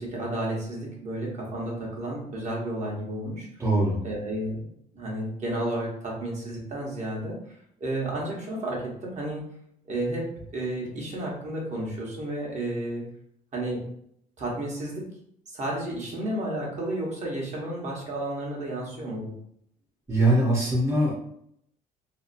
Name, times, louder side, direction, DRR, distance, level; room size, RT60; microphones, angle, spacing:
voice 1, 0.0-3.5 4.0-4.6 4.9-9.5 9.9-13.0 13.5-13.9 14.4-15.1 15.5-19.4, right 1 dB, 45° right, -3 dB, 1.1 m, -32 dB
voice 2, 3.6-4.0 20.1-21.1, right 1 dB, 15° right, -5 dB, 0.8 m, -22 dB
2.7 x 2.4 x 2.6 m, 0.69 s
cardioid pair, 110°, 17 cm